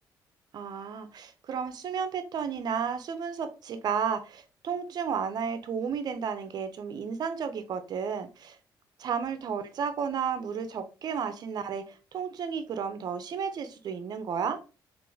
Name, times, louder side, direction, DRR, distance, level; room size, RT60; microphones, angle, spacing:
voice 1, 0.5-8.6 9.0-14.6, right 6 dB, 55° right, 0.5 m, -32 dB
3.6 x 2.5 x 2.7 m
cardioid pair, 110°, 8 cm